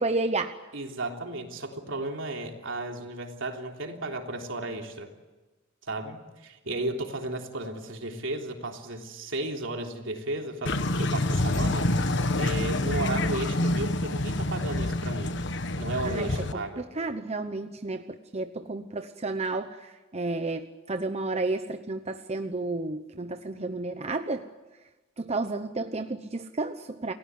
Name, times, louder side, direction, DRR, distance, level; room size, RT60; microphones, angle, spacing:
voice 1, 0.0-0.5 16.0-24.4 25.2-27.1, right 3 dB, 35° right, 8 dB, 0.9 m, -32 dB
voice 2, 0.7-5.1 5.9-11.9 12.3-15.3 15.8-16.9, right 2 dB, 75° right, 3 dB, 3.4 m, -34 dB
sound 1, 10.7-16.5, left 1 dB, 65° left, 1.4 m, -27 dB
28.5 x 18.0 x 9.6 m, 1.2 s
head